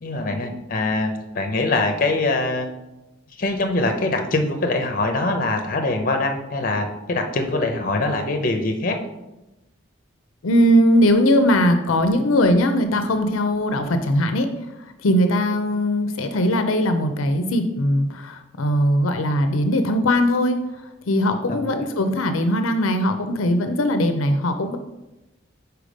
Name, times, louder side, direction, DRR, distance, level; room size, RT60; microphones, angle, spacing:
voice 1, 0.0-2.7 3.4-9.0 21.5-21.8, left 2 dB, 45° left, 5 dB, 0.7 m, -23 dB
voice 2, 10.4-14.5 15.0-20.6 21.1-24.8, equal, 85° left, 8 dB, 0.5 m, -20 dB
5.0 x 4.6 x 5.1 m, 0.98 s
head